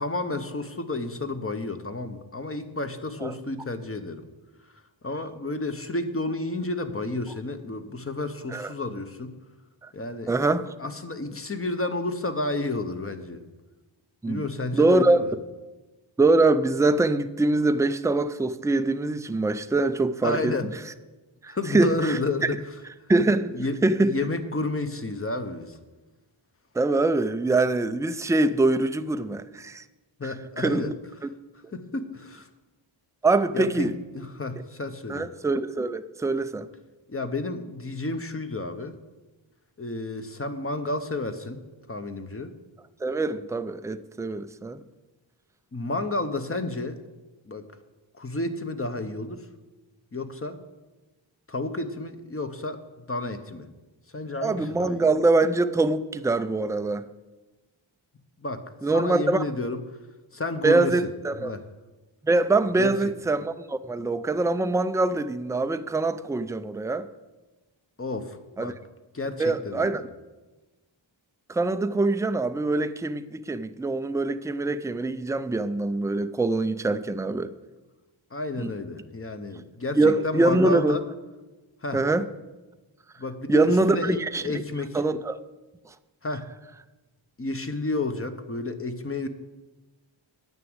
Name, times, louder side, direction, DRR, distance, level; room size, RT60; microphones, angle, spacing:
voice 1, 0.0-4.2 5.0-9.3 9.9-10.3 10.8-13.4 14.3-15.3 20.2-20.7 21.5-22.6 23.5-25.8 30.2-30.9 31.7-32.5 33.5-33.9 34.1-35.3 37.1-39.0 39.8-41.6 41.9-42.5 45.7-47.0 47.5-47.7 48.1-49.5 50.1-50.6 51.5-53.7 54.1-55.1 58.4-59.8 60.3-61.1 61.4-61.6 62.8-63.1 68.0-68.8 69.1-70.0 78.3-81.0 81.8-82.0 83.2-85.0 86.2-86.5 87.4-89.3, left 2 dB, 30° left, 0.9 m, -31 dB
voice 2, 10.3-10.7 14.2-14.4 14.7-15.2 16.2-20.5 21.4-22.5 23.1-24.1 26.7-29.8 30.2-30.9 33.2-33.9 35.1-36.7 43.0-44.8 54.4-57.1 58.8-59.4 60.6-61.5 62.2-67.1 68.6-68.7 69.4-70.1 71.5-77.5 78.6-78.7 80.0-81.0 81.9-82.3 83.5-84.6 84.9-85.4, right 2 dB, 5° right, 0.4 m, -24 dB
9.4 x 6.0 x 7.9 m
wide cardioid pair, 75°, 47 cm